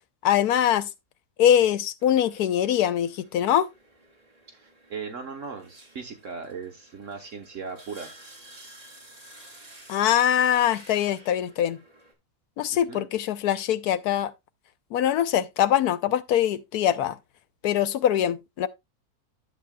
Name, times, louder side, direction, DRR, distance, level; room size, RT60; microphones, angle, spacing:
voice 1, 0.2-0.9 1.4-3.7 9.9-11.8 12.6-14.3 14.9-17.2 17.6-18.7, left 10 dB, 80° left, 1.2 m, -23 dB
sound 1, 2.0-12.1, right 1 dB, 25° right, 2.2 m, -52 dB
voice 2, 4.5-8.1 12.9-13.1, right 5 dB, 55° right, 1.5 m, -38 dB
12.0 x 7.3 x 2.2 m
omnidirectional pair, 1.6 m